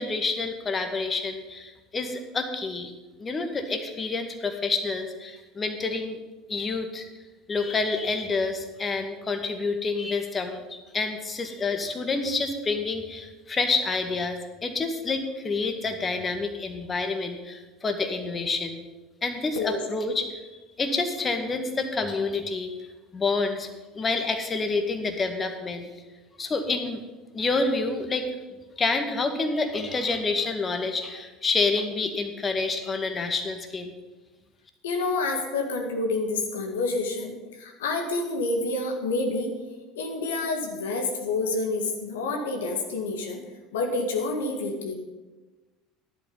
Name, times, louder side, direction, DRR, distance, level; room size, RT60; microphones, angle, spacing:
voice 1, 0.0-2.9 3.2-6.2 6.5-7.1 7.5-18.9 19.2-20.4 20.8-22.8 23.1-23.7 23.9-25.9 26.4-27.0 27.3-28.3 28.8-33.9, left 3 dB, 25° left, 6 dB, 1.9 m, -28 dB
voice 2, 34.8-39.5 40.0-43.4 43.7-45.0, left 3 dB, 70° left, 3 dB, 1.9 m, -28 dB
12.0 x 11.0 x 5.6 m, 1.2 s
figure-of-eight pair, 70°, 0 cm